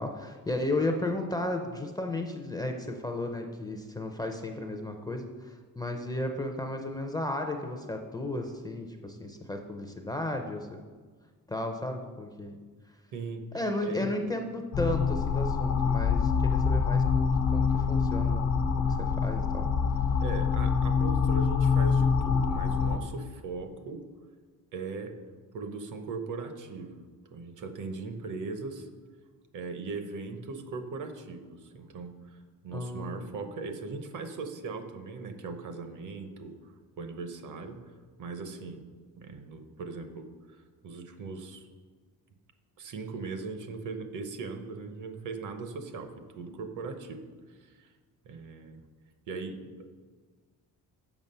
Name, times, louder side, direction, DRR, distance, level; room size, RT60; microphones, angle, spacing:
voice 1, 0.0-10.8 11.5-12.6 13.5-18.5 18.9-20.1 32.7-33.3, left 2 dB, 10° left, 3 dB, 0.5 m, -34 dB
sound 1, 14.7-23.0, left 6 dB, 75° left, 0.9 m, -25 dB
voice 2, 20.2-24.0 24.7-25.2 25.5-27.0 27.3-28.9 29.5-32.4 32.6-36.5 37.0-37.8 38.2-38.9 39.2-40.6 40.8-41.7 42.8-47.2 47.6-47.9 48.3-48.8 49.3-49.9, right 4 dB, 60° right, 7 dB, 0.9 m, -39 dB
7.2 x 6.0 x 5.4 m, 1.5 s
cardioid pair, 155°, 35 cm